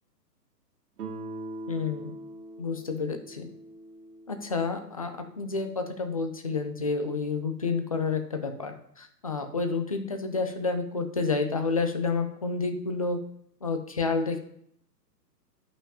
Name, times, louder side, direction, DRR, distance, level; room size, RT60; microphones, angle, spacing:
Guitar, 1.0-5.8, right 2 dB, 60° right, 1.9 m, -42 dB
voice 1, 1.7-2.1 2.6-3.5 4.3-13.2 13.6-14.4, left 4 dB, 25° left, 7 dB, 0.4 m, -29 dB
14.0 x 5.8 x 2.8 m, 0.69 s
hypercardioid pair, 145°, 50 cm